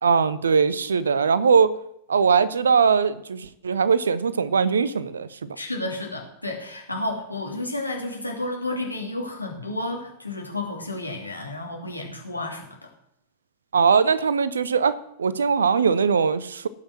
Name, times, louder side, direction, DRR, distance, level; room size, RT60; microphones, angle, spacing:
voice 1, 0.0-1.8 2.1-5.5 13.7-16.7, right 6 dB, 70° right, 17 dB, 0.7 m, -21 dB
voice 2, 5.6-12.8, left 2 dB, 85° left, 0 dB, 2.7 m, -31 dB
17.5 x 5.9 x 6.1 m, 0.79 s
figure-of-eight pair, 90°, 0 cm